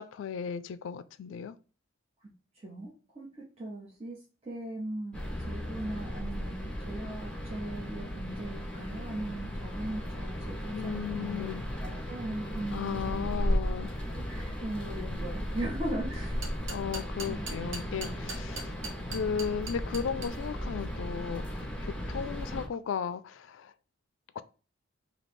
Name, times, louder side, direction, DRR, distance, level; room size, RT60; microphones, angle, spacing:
voice 1, 0.0-1.6 10.7-11.6 12.7-13.9 16.7-18.8 19.1-23.7 24.4-24.5, left 7 dB, 70° left, 0.3 m, -35 dB
voice 2, 2.6-3.3 3.6-5.2 5.5-11.5 11.8-13.3 14.1-16.4 17.3-18.1, right 1 dB, 30° right, 0.8 m, -39 dB
sound 1, 5.1-22.7, equal, 5° left, 1.1 m, -36 dB
sound 2, 16.1-20.3, right 3 dB, 70° right, 0.9 m, -40 dB
3.2 x 2.8 x 4.1 m
head